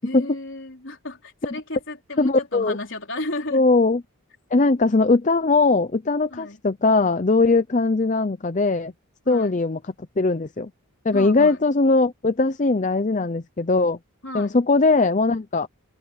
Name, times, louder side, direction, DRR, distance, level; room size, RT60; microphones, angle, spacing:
voice 1, 0.0-3.6 6.3-6.6 9.3-9.6 11.1-11.6 14.2-14.6, left 2 dB, 55° left, 4.1 m, -33 dB
voice 2, 2.2-2.8 3.5-4.0 4.5-8.9 9.3-9.8 10.2-10.7 11.0-14.0 14.3-15.7, left 3 dB, 35° left, 0.5 m, -20 dB
open air
head